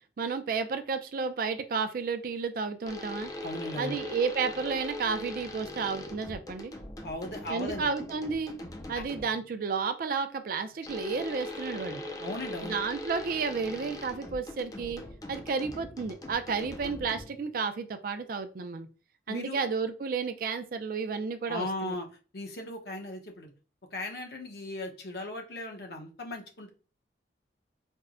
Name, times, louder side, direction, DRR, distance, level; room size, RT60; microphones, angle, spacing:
voice 1, 0.2-3.3 3.8-6.7 7.5-8.6 8.9-12.0 12.6-15.0 15.3-18.9 19.3-22.0, right 5 dB, 50° right, 8 dB, 0.4 m, -32 dB
sound 1, 2.9-9.5 10.9-17.5, left 1 dB, 20° left, 0.3 m, -41 dB
voice 2, 3.4-4.0 7.0-7.9 8.9-9.0 12.2-12.8 19.3-19.6 21.5-22.1 22.3-23.5 23.9-26.7, left 1 dB, 60° left, 2 dB, 0.8 m, -37 dB
4.4 x 2.1 x 2.4 m, 0.36 s
head